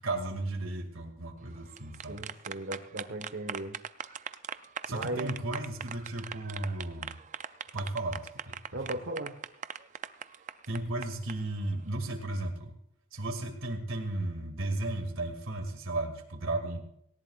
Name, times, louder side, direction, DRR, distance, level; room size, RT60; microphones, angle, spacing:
voice 1, 0.0-2.3 4.8-7.2 7.7-8.5 10.7-12.7 13.1-16.8, right 2 dB, 75° right, 5 dB, 2.1 m, -34 dB
sound 1, 1.6-11.3, right 8 dB, 35° right, 0.4 m, -40 dB
voice 2, 2.1-3.8 4.9-5.3 8.7-9.4, right 1 dB, 60° right, 2 dB, 1.2 m, -37 dB
18.0 x 17.5 x 2.4 m, 0.73 s
head